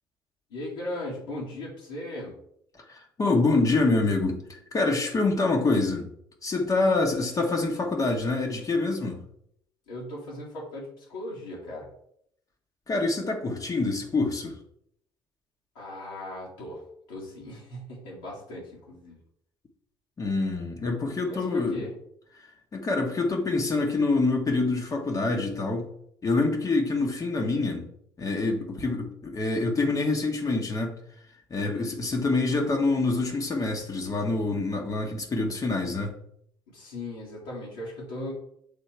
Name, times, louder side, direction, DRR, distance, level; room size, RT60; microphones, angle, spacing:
voice 1, 0.5-2.3 9.9-11.9 15.8-16.8 17.1-19.2 21.2-21.9 31.7-32.1 36.7-38.3, left 1 dB, 70° left, -6 dB, 1.9 m, -38 dB
voice 2, 2.9-6.1 6.4-9.2 12.9-14.6 20.2-21.8 22.4-25.9 26.2-27.8 28.2-31.0 31.5-36.1, left 3 dB, 30° left, 2 dB, 1.2 m, -26 dB
7.0 x 3.7 x 4.5 m, 0.71 s
figure-of-eight pair, 50°, 12 cm